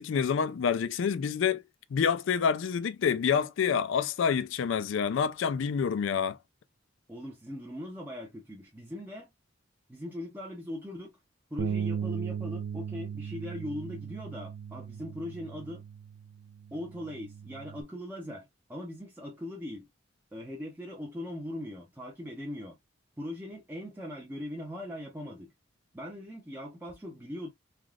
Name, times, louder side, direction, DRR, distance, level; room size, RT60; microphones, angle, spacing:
voice 1, 0.0-1.6 1.9-6.4, left 7 dB, 75° left, 0.4 m, -27 dB
voice 2, 7.1-9.3 9.9-11.2 11.5-15.8 16.7-19.9 20.3-22.8 23.2-25.5 25.9-27.5, left 1 dB, 10° right, 0.6 m, -40 dB
Bass guitar, 11.6-17.8, right 7 dB, 80° right, 0.3 m, -37 dB
3.4 x 2.4 x 2.3 m
head